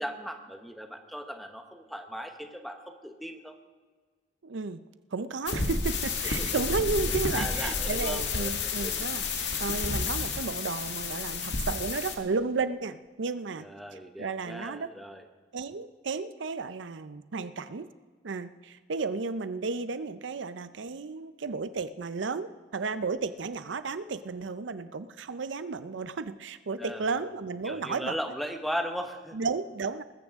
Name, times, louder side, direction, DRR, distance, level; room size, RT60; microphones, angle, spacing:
voice 1, 0.0-3.6 6.4-6.5 7.3-8.9 13.6-15.2 26.8-27.1 27.6-29.4, equal, ahead, 5 dB, 1.0 m, -37 dB
voice 2, 4.4-4.8 5.1-13.7 14.2-14.9 15.5-17.9 18.2-28.2 29.3-30.0, right 4 dB, 80° right, 13 dB, 0.6 m, -33 dB
sound 1, 5.5-12.2, left 4 dB, 70° left, 1.9 m, -31 dB
20.5 x 14.5 x 3.6 m, 1.5 s
head